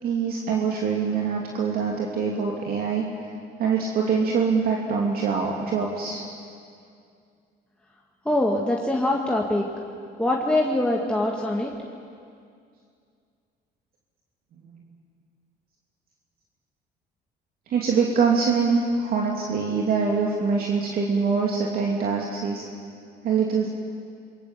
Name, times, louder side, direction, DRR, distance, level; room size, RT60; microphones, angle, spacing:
voice 1, 0.0-3.1 3.6-6.2 17.7-22.6 23.2-23.7, right 5 dB, 60° right, -1 dB, 2.9 m, -24 dB
voice 2, 8.3-9.6 10.2-11.7, left 1 dB, 5° left, -1 dB, 2.0 m, -23 dB
27.0 x 23.5 x 7.7 m, 2.3 s
cardioid pair, 110°, 17 cm